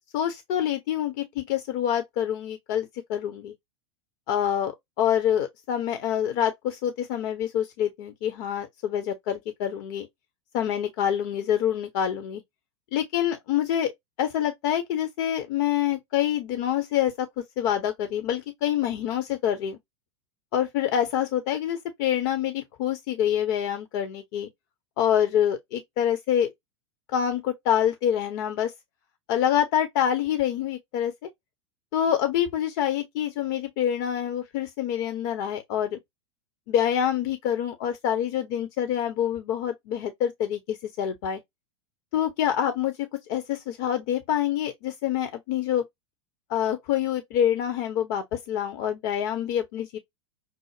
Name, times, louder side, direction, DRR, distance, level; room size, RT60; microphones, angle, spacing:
voice 1, 0.1-3.5 4.3-10.1 10.5-12.4 12.9-13.9 14.2-17.3 17.6-19.8 20.5-24.5 25.0-26.5 27.1-28.7 29.3-31.1 31.9-36.0 36.7-41.4 42.1-45.8 46.5-50.0, left 10 dB, 45° left, 0.8 m, -26 dB
6.1 x 2.0 x 3.2 m
figure-of-eight pair, 90°, 15 cm